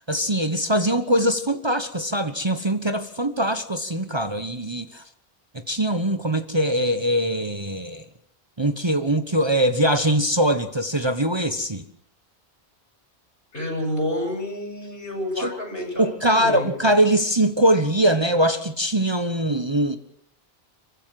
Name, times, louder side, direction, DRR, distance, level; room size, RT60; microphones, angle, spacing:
voice 1, 0.1-5.0 5.7-8.0 8.6-11.8 15.4-15.5 16.0-20.0, right 1 dB, 25° right, 8 dB, 1.1 m, -22 dB
voice 2, 13.5-16.7, left 1 dB, 65° left, 2 dB, 7.8 m, -29 dB
26.0 x 15.0 x 7.7 m, 0.67 s
omnidirectional pair, 1.0 m